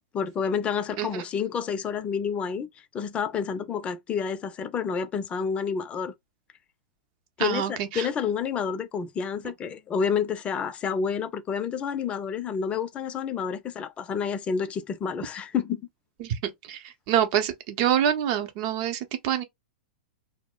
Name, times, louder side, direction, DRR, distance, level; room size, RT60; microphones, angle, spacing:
voice 1, 0.1-6.1 7.4-15.8, left 6 dB, 25° left, 0.4 m, -29 dB
voice 2, 7.4-8.1 16.2-19.4, right 10 dB, 45° right, 0.7 m, -26 dB
2.2 x 2.0 x 3.7 m
hypercardioid pair, 110°, 5 cm